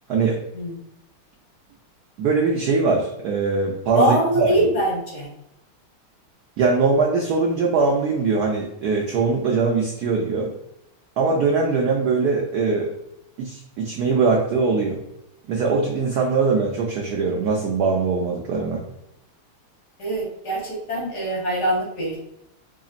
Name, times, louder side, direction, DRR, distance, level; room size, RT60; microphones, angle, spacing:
voice 1, 2.2-4.5 6.6-10.5 11.2-12.9 13.4-15.0 15.5-18.8, right 4 dB, 90° right, -1 dB, 0.8 m, -21 dB
voice 2, 3.9-5.3 20.0-22.2, right 1 dB, 55° left, -4 dB, 1.5 m, -23 dB
3.9 x 3.4 x 2.4 m, 0.82 s
omnidirectional pair, 2.3 m